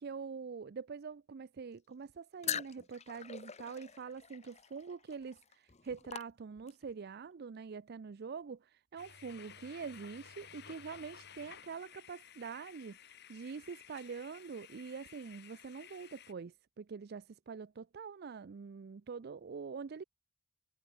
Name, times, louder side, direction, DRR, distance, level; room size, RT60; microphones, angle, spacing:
voice 1, 0.0-20.0, right 5 dB, 55° right, 0.4 m, -45 dB
sound 1, 2.4-6.9, left 8 dB, 35° left, 1.0 m, -43 dB
sound 2, 9.0-16.3, left 8 dB, 55° left, 2.9 m, -55 dB
head